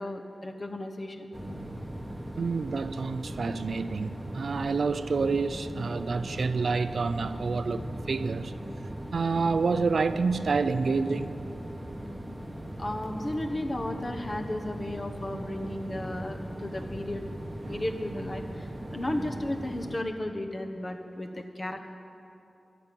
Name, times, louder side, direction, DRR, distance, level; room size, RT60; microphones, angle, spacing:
voice 1, 0.0-1.4 12.8-17.2 17.7-21.9, left 1 dB, 35° left, 1.1 m, -34 dB
sound 1, 1.3-20.0, right 1 dB, 10° right, 1.1 m, -39 dB
voice 2, 2.4-8.5 9.1-11.4 16.8-16.9 17.6-17.8 18.8-19.0, right 4 dB, 75° right, 0.5 m, -28 dB
13.5 x 7.1 x 9.8 m
wide cardioid pair, 70°, 0 cm